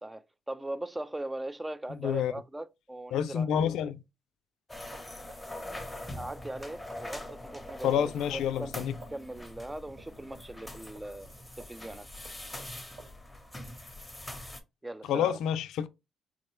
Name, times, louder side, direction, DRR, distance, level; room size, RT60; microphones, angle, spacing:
voice 1, 0.0-3.6 6.2-12.1 14.8-15.4, right 1 dB, 10° right, 0.3 m, -40 dB
voice 2, 1.9-2.3 3.1-4.0 7.8-8.9 15.1-15.9, left 9 dB, 85° left, 0.3 m, -28 dB
sound 1, 4.7-14.6, left 1 dB, 10° left, 0.8 m, -43 dB
sound 2, 4.9-11.3 11.6-12.7 13.0-13.2, right 3 dB, 60° right, 1.3 m, -52 dB
3.6 x 2.1 x 3.0 m
cardioid pair, 90°, 0 cm